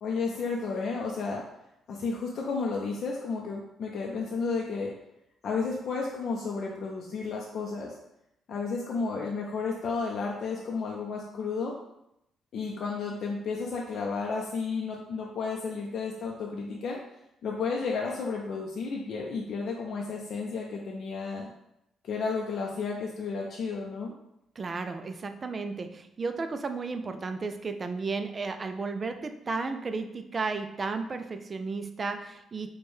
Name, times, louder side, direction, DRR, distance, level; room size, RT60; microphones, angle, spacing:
voice 1, 0.0-1.4 1.9-4.9 5.4-8.0 8.5-11.8 12.5-17.0 17.4-21.5 22.0-24.1, left 4 dB, 65° left, -1 dB, 0.5 m, -32 dB
voice 2, 24.6-32.7, right 4 dB, 35° right, 8 dB, 0.3 m, -33 dB
4.3 x 2.2 x 3.2 m, 0.82 s
cardioid pair, 90°, 0 cm